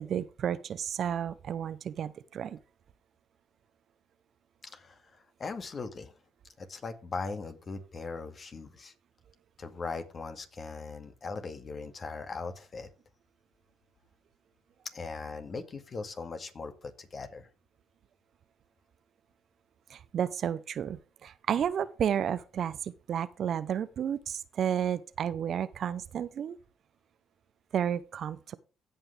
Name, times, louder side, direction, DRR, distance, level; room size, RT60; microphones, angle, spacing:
voice 1, 0.0-2.6 19.9-26.6 27.7-28.6, right 9 dB, 60° right, 0.7 m, -32 dB
voice 2, 4.6-6.1 6.6-8.9 9.6-12.9 14.9-17.5, left 4 dB, 40° left, 2.0 m, -39 dB
16.0 x 5.7 x 3.3 m
hypercardioid pair, 60°, 0 cm